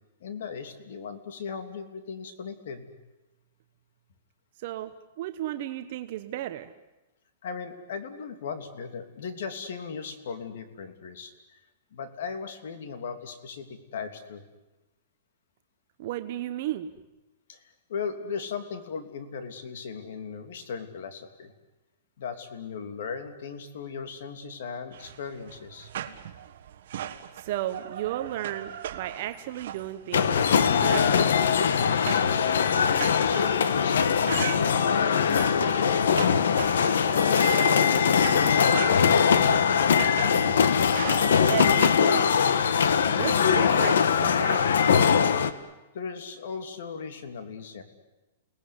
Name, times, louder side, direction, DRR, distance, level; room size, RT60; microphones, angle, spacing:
voice 1, 0.2-2.9 7.4-11.6 11.9-14.4 17.5-17.6 17.9-21.5 22.2-25.9 32.0-32.6 33.2-36.3 37.0-39.9 45.3-45.6 45.9-47.8, left 6 dB, 65° left, 9 dB, 3.0 m, -38 dB
voice 2, 4.6-4.9 5.2-6.7 16.0-16.9 27.3-31.2 41.5-42.3 43.2-44.7, right 13 dB, 40° right, 8 dB, 1.0 m, -34 dB
sound 1, 24.9-42.0, right 10 dB, 55° right, 1.7 m, -39 dB
sound 2, 30.1-45.5, left 7 dB, 85° left, 1.5 m, -22 dB
30.0 x 19.0 x 9.8 m, 1.0 s
hypercardioid pair, 170°, 0 cm